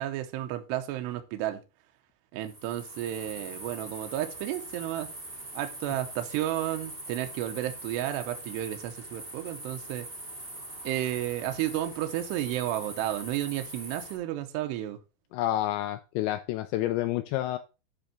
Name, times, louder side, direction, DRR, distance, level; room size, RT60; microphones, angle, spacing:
voice 1, 0.0-1.6 2.3-5.1 5.5-10.1 10.8-15.0, right 13 dB, 80° right, 6 dB, 2.6 m, -32 dB
sound 1, 2.4-14.2, right 2 dB, 45° right, 0.5 m, -42 dB
voice 2, 15.3-17.6, left 14 dB, 85° left, 9 dB, 2.5 m, -29 dB
9.8 x 3.5 x 5.9 m, 0.29 s
omnidirectional pair, 5.7 m